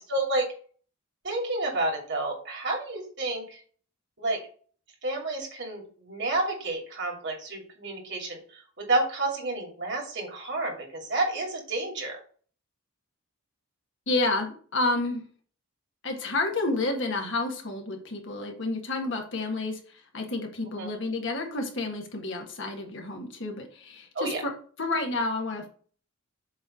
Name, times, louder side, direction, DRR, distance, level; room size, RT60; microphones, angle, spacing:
voice 1, 0.1-0.5 1.2-3.6 4.2-4.4 5.0-8.6 8.9-12.2 20.7-20.9 24.1-24.4, right 2 dB, 55° right, 0 dB, 2.6 m, -30 dB
voice 2, 14.1-15.2 16.0-24.5 24.8-25.7, left 2 dB, 60° left, 2 dB, 1.7 m, -30 dB
7.6 x 3.3 x 5.7 m, 0.43 s
head